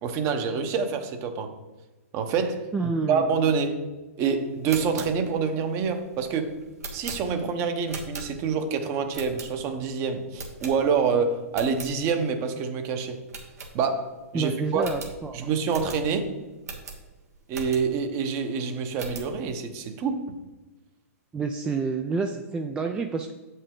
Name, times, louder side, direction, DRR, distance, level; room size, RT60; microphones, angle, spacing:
voice 1, 0.0-1.5 2.1-3.8 4.2-6.5 6.9-13.2 13.7-14.9 15.3-16.3 17.5-20.3, right 5 dB, 30° right, 7 dB, 0.9 m, -27 dB
voice 2, 2.7-3.3 14.3-15.5 21.3-23.3, right 4 dB, 10° right, 4 dB, 0.3 m, -28 dB
sound 1, 4.5-8.7 9.1-9.9 10.3-11.1 11.4-11.9 12.4-12.5 12.7-12.8 13.3-14.2 14.4-14.5 14.8-18.1 18.5-19.4, right 3 dB, 85° right, 1.7 m, -40 dB
8.0 x 5.5 x 3.7 m, 1.2 s
hypercardioid pair, 135°, 8 cm